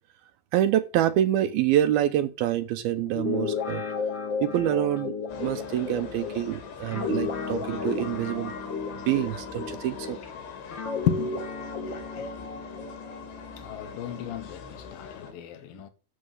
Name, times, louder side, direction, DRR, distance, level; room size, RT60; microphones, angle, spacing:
voice 1, 0.5-3.8 4.4-5.1 5.4-8.5 9.1-10.2, right 12 dB, 80° right, 2.4 m, -26 dB
Guitar, 3.1-10.3 10.7-14.4, left 4 dB, 35° left, 2.2 m, -34 dB
sound 1, 5.3-15.3, left 6 dB, 85° left, 4.5 m, -42 dB
voice 2, 11.1-11.4 11.9-12.3 13.6-15.9, left 11 dB, 65° left, 2.8 m, -33 dB
10.0 x 7.9 x 7.7 m
omnidirectional pair, 4.8 m